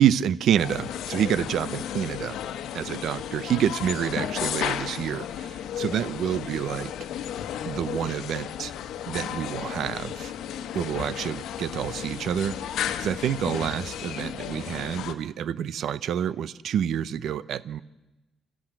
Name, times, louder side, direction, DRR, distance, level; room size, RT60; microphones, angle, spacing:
voice 1, 0.0-2.4 2.7-6.9 7.7-8.7 9.1-10.3 10.7-17.8, right 9 dB, 70° right, 18 dB, 0.7 m, -28 dB
sound 1, 0.6-15.1, left 10 dB, 80° left, 1.2 m, -34 dB
24.5 x 14.0 x 9.0 m, 1.1 s
cardioid pair, 90°, 0 cm